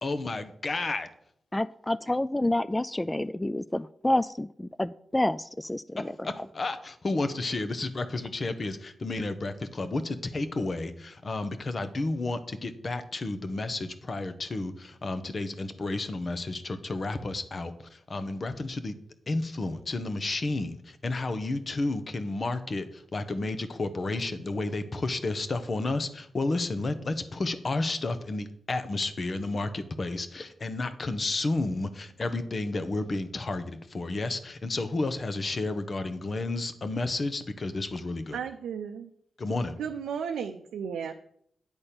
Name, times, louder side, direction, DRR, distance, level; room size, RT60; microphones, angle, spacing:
voice 1, 0.0-1.1 6.2-18.9 19.3-38.4 39.4-39.7, left 2 dB, 50° left, 10 dB, 1.0 m, -31 dB
voice 2, 1.5-6.3, left 1 dB, 20° left, 15 dB, 0.3 m, -29 dB
voice 3, 38.3-39.1 39.8-41.1, right 7 dB, 85° right, 5 dB, 0.5 m, -34 dB
8.7 x 4.2 x 6.8 m, 0.67 s
supercardioid pair, 40°, 0 cm